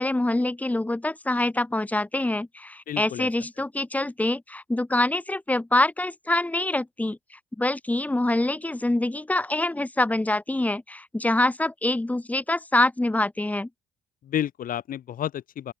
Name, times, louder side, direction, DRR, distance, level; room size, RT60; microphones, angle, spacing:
voice 1, 0.0-7.2 7.6-13.7, left 2 dB, 10° left, 3.2 m, -25 dB
voice 2, 2.9-3.3 14.2-15.7, left 10 dB, 55° left, 2.5 m, -30 dB
open air
cardioid pair, 110°, 17 cm